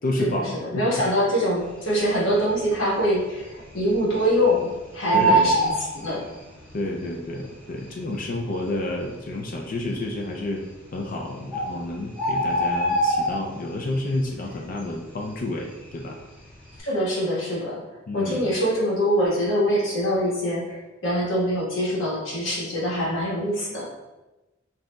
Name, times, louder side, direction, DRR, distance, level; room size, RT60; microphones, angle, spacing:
voice 1, 0.0-1.0 5.1-5.6 6.7-10.6 10.9-16.2 18.1-18.6, left 1 dB, 45° left, 1 dB, 0.4 m, -30 dB
voice 2, 0.7-6.2 16.8-17.8 18.1-23.9, equal, 80° left, -6 dB, 1.4 m, -24 dB
Bird, 2.1-2.7 3.0-3.1 3.4-4.6 4.8-6.7 7.5-7.6 8.3-8.4 8.6-8.7 9.3-9.8 10.7-10.8 11.2-11.3 11.5-13.8 14.1-14.5 14.8-16.1 16.5-16.7, right 1 dB, 5° left, 1.3 m, -23 dB
5.1 x 2.8 x 2.2 m, 1.1 s
head